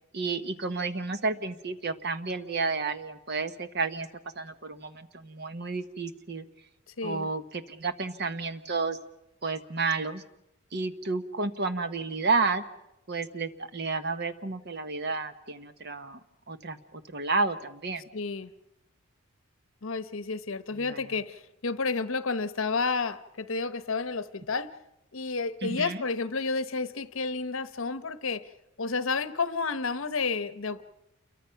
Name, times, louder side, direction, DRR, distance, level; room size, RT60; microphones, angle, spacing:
voice 1, 0.1-4.1 4.4-6.4 7.0-9.0 9.4-10.2 10.7-12.6 13.1-16.2 16.5-18.0 20.8-21.0 25.6-26.0, right 4 dB, 50° right, 10 dB, 1.1 m, -31 dB
voice 2, 6.9-7.3 18.1-18.5 19.8-24.7 25.1-28.5 28.8-30.8, left 4 dB, 70° left, 13 dB, 0.9 m, -31 dB
28.5 x 23.0 x 5.8 m, 0.90 s
head